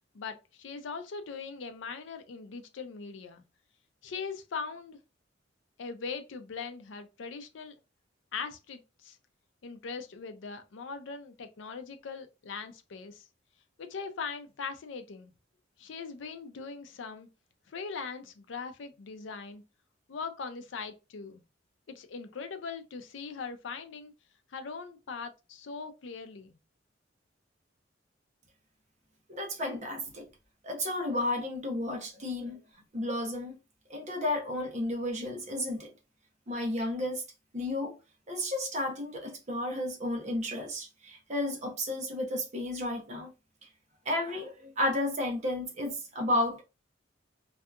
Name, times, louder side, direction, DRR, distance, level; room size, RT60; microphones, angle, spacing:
voice 1, 0.1-3.4 4.0-5.0 5.8-7.8 8.3-9.2 9.6-13.2 13.8-15.3 15.8-17.3 17.7-19.6 20.1-21.4 21.9-24.1 24.5-26.6, left 5 dB, 75° left, 0.4 m, -40 dB
voice 2, 29.3-30.3 30.6-32.6 32.9-33.6 33.9-35.9 36.5-37.2 37.5-37.9 38.3-43.3 44.1-46.6, left 1 dB, 40° right, 0.8 m, -32 dB
2.7 x 2.3 x 2.3 m
head